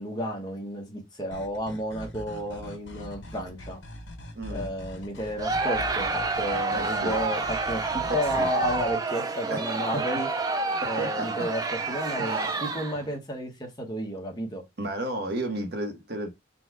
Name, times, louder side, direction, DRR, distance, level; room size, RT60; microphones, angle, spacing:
voice 1, 0.0-3.8 4.5-10.3 10.8-11.6 11.9-14.6, equal, 20° left, 1.0 m, -32 dB
sound 1, 1.3-8.9, equal, 65° left, 1.0 m, -42 dB
voice 2, 4.3-4.8 6.7-7.2 8.4-8.5 9.5-10.0 10.8-11.5 12.2-12.6 14.8-16.3, right 1 dB, 50° right, 0.9 m, -33 dB
Crowd, 5.4-13.1, right 3 dB, 20° right, 0.4 m, -29 dB
4.0 x 2.3 x 4.6 m
head